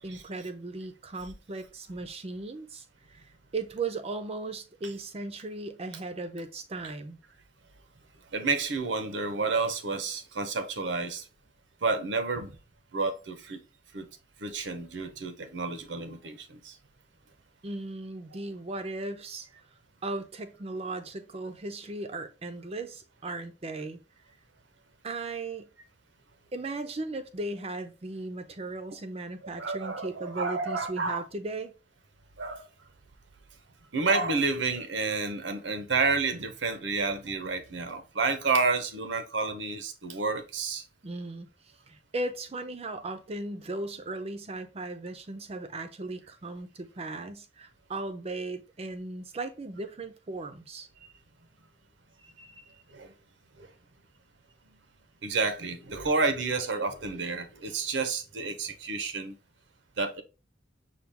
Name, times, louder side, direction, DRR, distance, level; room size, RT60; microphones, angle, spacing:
voice 1, 0.0-7.2 17.6-19.5 20.0-24.0 25.0-25.7 26.5-31.7 41.0-41.5 41.9-50.9, right 2 dB, 35° right, 0.5 m, -37 dB
voice 2, 8.3-11.2 11.8-12.6 12.9-13.6 13.9-14.1 14.4-16.7 29.6-31.2 32.4-32.6 33.9-40.8 52.4-52.5 52.9-53.1 53.6-53.7 55.2-59.4 60.0-60.2, right 4 dB, 85° right, 0.8 m, -30 dB
5.8 x 2.3 x 3.4 m
head